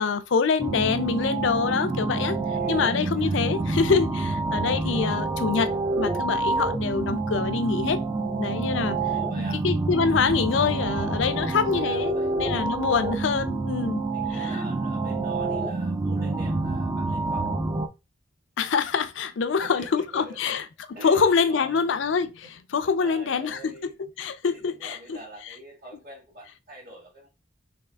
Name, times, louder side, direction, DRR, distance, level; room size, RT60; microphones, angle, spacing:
voice 1, 0.0-2.4 2.7-8.0 8.4-9.0 9.6-14.0 14.3-14.5 18.6-20.6 21.0-23.7 24.2-25.2, left 5 dB, 75° left, 0.4 m, -25 dB
sound 1, 0.6-17.9, right 3 dB, 15° right, 0.3 m, -27 dB
voice 2, 2.5-3.5 7.3-7.7 9.1-9.6 10.8-12.3 12.8-12.9 14.1-17.5 19.6-20.6 20.9-21.8 22.4-22.5 22.8-23.9 24.4-27.3, right 1 dB, 50° right, 1.8 m, -45 dB
3.5 x 3.0 x 3.3 m
head